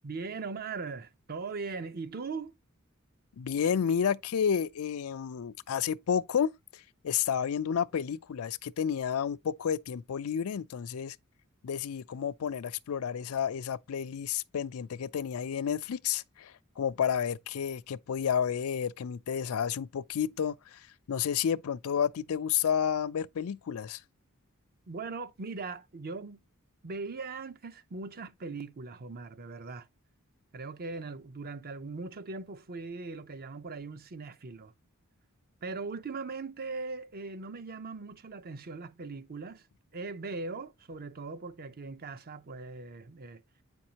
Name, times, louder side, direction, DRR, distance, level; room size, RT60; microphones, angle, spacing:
voice 1, 0.0-2.5 24.9-26.4 26.8-29.9 30.5-34.7 35.6-39.7 39.9-43.4, right 4 dB, 45° right, 0.6 m, -40 dB
voice 2, 3.4-11.2 11.6-24.0, left 8 dB, 80° left, 0.4 m, -31 dB
8.5 x 5.3 x 2.8 m
head